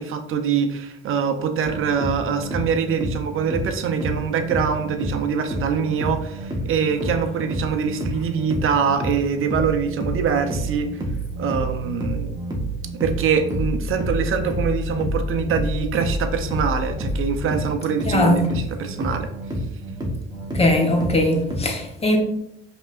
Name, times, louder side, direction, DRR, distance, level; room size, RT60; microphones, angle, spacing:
voice 1, 0.0-10.9 11.4-12.4 13.0-19.3, right 6 dB, 40° right, 0.7 m, -24 dB
sound 1, 1.6-21.6, equal, 15° right, 1.0 m, -29 dB
voice 2, 18.0-18.5 20.5-22.2, left 1 dB, 20° left, 1.0 m, -20 dB
5.3 x 3.0 x 2.5 m
hypercardioid pair, 70°, 31 cm